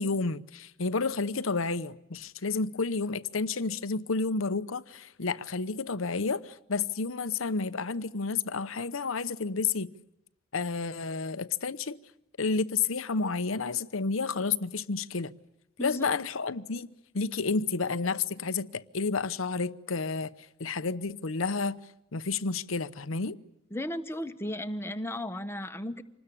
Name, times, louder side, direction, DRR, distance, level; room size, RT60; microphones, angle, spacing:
voice 1, 0.0-9.9 10.5-12.0 12.4-15.3 15.8-20.3 20.6-21.8 22.1-23.4, left 4 dB, 85° left, 0.9 m, -30 dB
voice 2, 15.8-16.2 23.7-26.0, left 1 dB, 10° left, 1.2 m, -35 dB
26.5 x 20.0 x 9.9 m
head